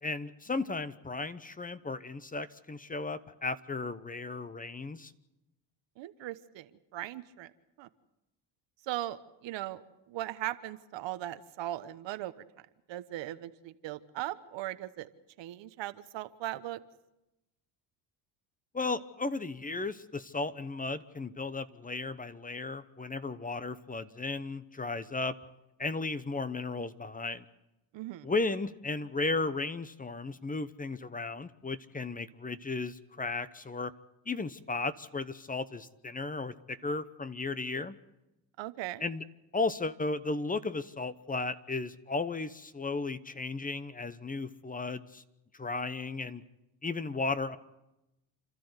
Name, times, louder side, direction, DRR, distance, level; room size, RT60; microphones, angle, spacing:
voice 1, 0.0-5.1 18.7-25.4 25.8-27.4 28.2-33.9 34.3-38.0 39.0-39.2 39.5-45.2 45.5-46.4 46.8-47.6, left 3 dB, 20° left, 14 dB, 0.9 m, -35 dB
voice 2, 6.0-7.5 7.8-7.9 8.8-15.1 15.4-16.8 27.9-28.3 38.6-39.0, right 14 dB, 70° right, 12 dB, 1.2 m, -39 dB
29.0 x 13.0 x 8.1 m, 0.95 s
cardioid pair, 95°, 45 cm